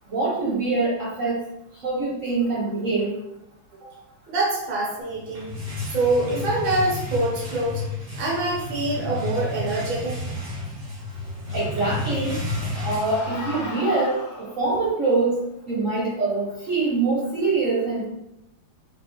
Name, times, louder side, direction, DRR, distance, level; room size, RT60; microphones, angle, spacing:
voice 1, 0.1-1.4 1.8-3.1 11.5-12.4 12.8-15.4 15.7-18.1, right 3 dB, 55° right, -5 dB, 0.9 m, -24 dB
voice 2, 4.3-5.5 5.9-7.8 8.2-10.2, right 2 dB, 80° right, -3 dB, 1.8 m, -25 dB
sound 1, 5.1-13.8, left 2 dB, 35° right, 1.2 m, -31 dB
sound 2, 12.2-14.9, left 2 dB, 65° left, 1.5 m, -37 dB
4.1 x 3.8 x 3.0 m, 0.86 s
omnidirectional pair, 2.2 m